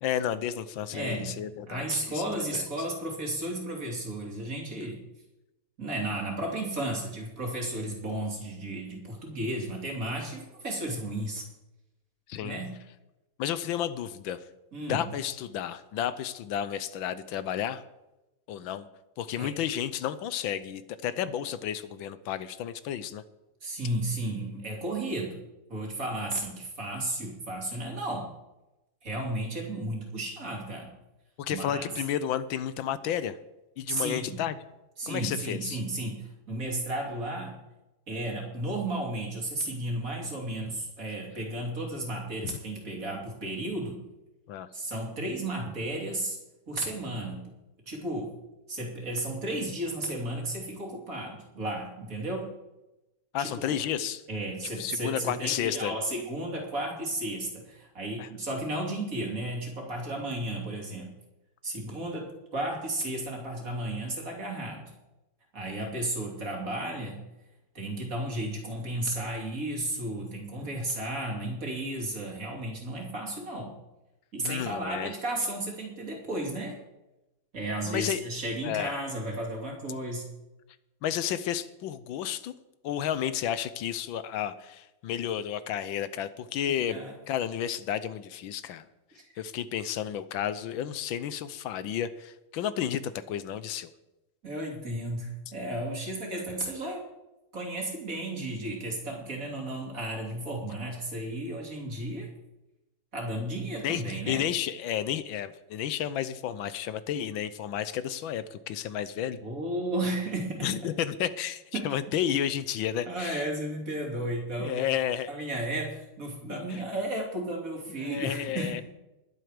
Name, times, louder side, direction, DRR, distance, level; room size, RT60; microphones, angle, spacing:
voice 1, 0.0-2.7 12.3-12.6 13.4-14.4 14.9-17.8 18.5-18.9 19.2-23.2 31.4-33.4 33.8-34.5 35.1-35.8 42.4-42.6 44.5-44.7 53.3-54.2 54.8-55.9 58.2-58.3 74.4-75.1 77.9-78.2 78.6-79.0 81.0-82.5 82.8-87.0 87.3-88.9 89.4-93.9 103.8-109.4 110.6-113.4 114.6-115.3 116.5-116.8 118.0-118.8, left 10 dB, 80° left, 14 dB, 1.5 m, -32 dB
voice 2, 0.9-5.0 5.8-11.5 12.4-12.7 14.7-15.1 19.4-19.5 23.6-25.4 25.7-28.3 29.0-30.9 31.5-31.9 33.9-34.4 35.0-37.6 38.1-44.0 44.7-46.4 46.7-47.4 47.8-48.3 48.7-52.5 53.4-53.8 54.3-61.1 61.6-64.9 65.5-67.2 67.7-73.8 74.3-76.8 77.5-80.3 86.6-87.1 89.1-89.2 94.4-97.0 97.5-102.3 103.1-104.4 109.4-110.7 111.7-111.9 113.1-114.9 115.3-118.7, right 1 dB, 45° right, 0 dB, 3.3 m, -33 dB
21.0 x 7.8 x 5.1 m, 0.97 s
omnidirectional pair, 2.1 m